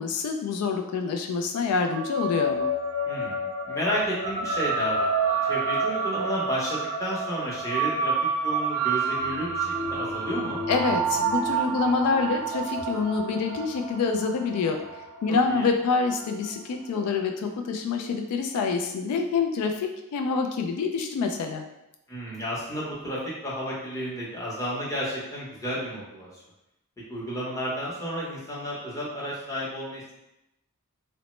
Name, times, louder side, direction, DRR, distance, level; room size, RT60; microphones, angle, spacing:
voice 1, 0.0-2.7 10.7-14.8 15.2-21.6, left 4 dB, 80° left, 8 dB, 0.3 m, -26 dB
sound 1, 1.9-16.6, right 3 dB, 85° right, 0.6 m, -29 dB
voice 2, 3.1-5.1 5.4-8.1 8.4-10.6 15.5-15.7 22.1-26.4 27.1-30.1, equal, 15° left, -6 dB, 0.7 m, -32 dB
2.9 x 2.0 x 3.0 m, 0.89 s
head